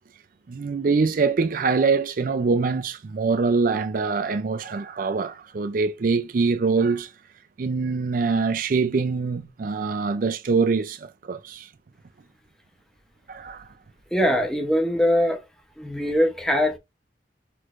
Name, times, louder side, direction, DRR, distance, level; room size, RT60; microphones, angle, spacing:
voice 1, 0.5-7.1 7.6-11.7 13.3-13.7, right 4 dB, 50° right, 0.4 m, -24 dB
voice 2, 14.1-15.4 15.8-16.8, equal, 5° left, 0.8 m, -22 dB
6.1 x 3.1 x 2.5 m
head